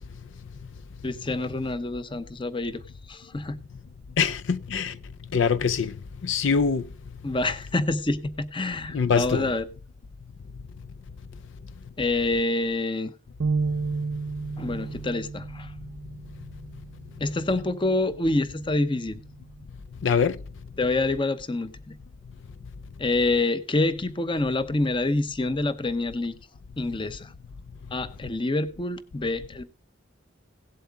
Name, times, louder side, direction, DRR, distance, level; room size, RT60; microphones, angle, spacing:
voice 1, 1.0-2.8 3.1-3.6 7.2-9.6 12.0-13.1 14.6-15.7 17.2-19.2 20.8-21.9 23.0-26.4 26.8-27.3 27.9-29.6, left 2 dB, 25° left, 0.7 m, -27 dB
voice 2, 4.2-5.0 5.3-5.9 6.2-6.8 8.9-9.5 20.0-20.4, left 6 dB, 70° left, 0.4 m, -23 dB
sound 1, 13.4-19.6, right 4 dB, 65° right, 0.6 m, -33 dB
17.0 x 7.8 x 3.5 m
head